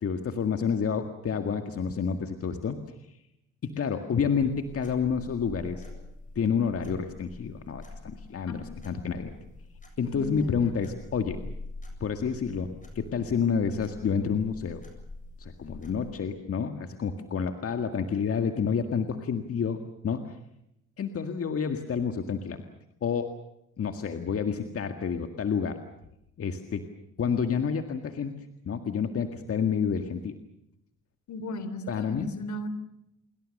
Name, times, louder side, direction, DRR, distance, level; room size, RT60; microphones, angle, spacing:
voice 1, 0.0-3.2 3.6-5.9 6.4-9.3 10.0-11.4 12.0-12.7 13.0-14.8 15.4-20.4 21.0-22.6 23.0-23.3 23.8-25.8 26.4-26.9 27.2-28.3 28.7-30.4 31.9-32.3, left 6 dB, 50° left, 7 dB, 1.9 m, -29 dB
sound 1, 4.4-16.1, left 2 dB, 25° left, 7.7 m, -45 dB
voice 2, 8.5-8.8 10.1-10.7 31.3-32.7, left 1 dB, 70° left, 13 dB, 3.6 m, -37 dB
28.0 x 22.0 x 6.6 m, 0.83 s
cardioid pair, 90°, 30 cm